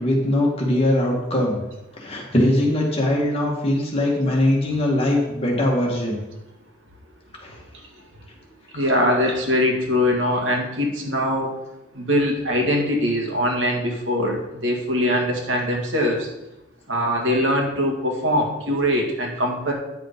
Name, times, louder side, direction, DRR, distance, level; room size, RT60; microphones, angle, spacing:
voice 1, 0.0-1.6 2.0-6.2 7.4-7.6 8.7-9.0, left 1 dB, 30° left, -2 dB, 2.0 m, -21 dB
voice 2, 8.7-11.5 12.0-16.3 16.9-19.7, equal, 85° right, 1 dB, 2.0 m, -22 dB
9.5 x 5.7 x 5.2 m, 0.94 s
head